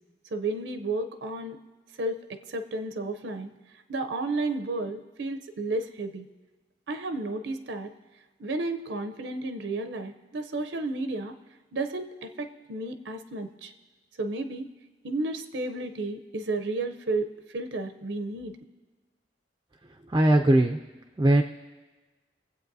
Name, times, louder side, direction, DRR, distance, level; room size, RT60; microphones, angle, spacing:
voice 1, 0.3-1.6 2.0-2.2 2.5-3.5 3.9-6.3 6.9-7.9 8.4-11.3 11.7-13.7 14.2-14.7 15.0-18.5, right 2 dB, 85° right, 8 dB, 0.6 m, -32 dB
voice 2, 20.1-20.8 21.2-21.4, right 1 dB, 20° right, 4 dB, 0.3 m, -20 dB
24.0 x 8.1 x 2.7 m, 1.2 s
head